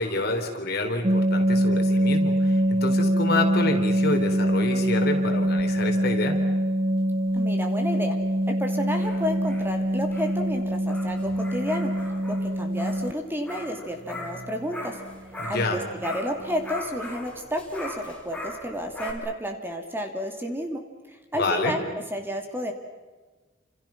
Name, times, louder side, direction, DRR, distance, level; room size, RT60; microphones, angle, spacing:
voice 1, 0.0-6.4 15.4-15.8 21.3-21.8, left 2 dB, 55° left, 3 dB, 4.1 m, -28 dB
sound 1, 1.0-13.1 15.0-15.2 15.5-15.6 16.0-16.2 16.4-16.7, equal, 30° right, 0.7 m, -24 dB
voice 2, 7.3-8.2 8.5-11.9 12.3-15.0 15.5-20.8 21.1-21.8 22.1-22.7, equal, 10° right, 4 dB, 2.7 m, -31 dB
sound 2, 8.7-15.8 16.0-19.1, left 1 dB, 5° left, 4.9 m, -40 dB
29.0 x 28.0 x 6.0 m, 1.3 s
head